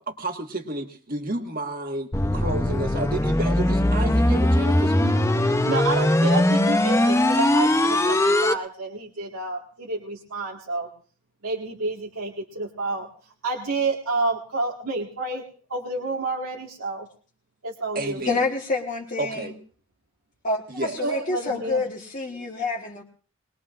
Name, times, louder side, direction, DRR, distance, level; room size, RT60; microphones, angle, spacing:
voice 1, 0.0-5.2 17.9-18.4 19.2-19.5 20.7-21.0, right 2 dB, 40° right, 5 dB, 1.5 m, -31 dB
sound 1, 2.1-8.5, left 1 dB, 15° left, 0.6 m, -20 dB
voice 2, 5.6-10.9 11.4-13.1 13.4-15.4 15.7-17.1 17.6-18.2 21.0-21.8, right 3 dB, 90° right, -2 dB, 1.8 m, -29 dB
voice 3, 18.2-19.6 20.4-23.0, left 3 dB, 35° left, -3 dB, 1.4 m, -28 dB
22.5 x 20.0 x 2.5 m, 0.40 s
head